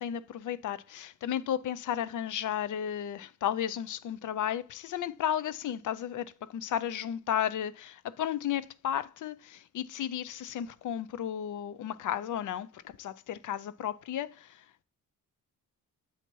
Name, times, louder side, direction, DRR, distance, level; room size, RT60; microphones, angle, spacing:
voice 1, 0.0-14.8, left 10 dB, 60° left, 0.5 m, -34 dB
8.0 x 2.9 x 4.5 m
wide cardioid pair, 125°, 35 cm